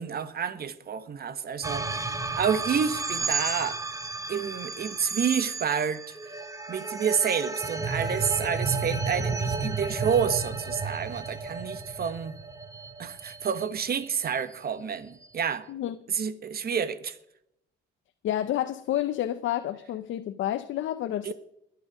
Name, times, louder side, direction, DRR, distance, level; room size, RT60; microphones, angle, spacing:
voice 1, 0.0-3.8 4.3-6.1 6.7-12.4 13.0-15.7 16.1-17.2 21.2-21.3, right 7 dB, 50° right, 1.4 m, -29 dB
sound 1, 1.6-14.1, right 3 dB, 15° right, 1.4 m, -32 dB
voice 2, 18.2-21.3, left 12 dB, 75° left, 0.8 m, -29 dB
21.5 x 8.5 x 5.0 m
cardioid pair, 90°, 20 cm